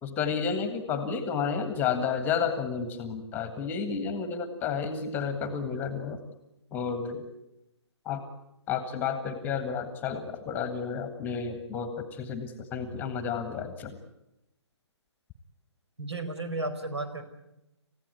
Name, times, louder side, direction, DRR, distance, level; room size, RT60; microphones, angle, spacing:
voice 1, 0.0-6.2 6.7-7.2 8.0-8.2 8.7-14.0, left 6 dB, 10° left, 10 dB, 1.6 m, -31 dB
voice 2, 16.0-17.2, right 2 dB, 65° right, 10 dB, 4.7 m, -33 dB
28.5 x 16.0 x 9.7 m, 0.92 s
figure-of-eight pair, 135°, 15 cm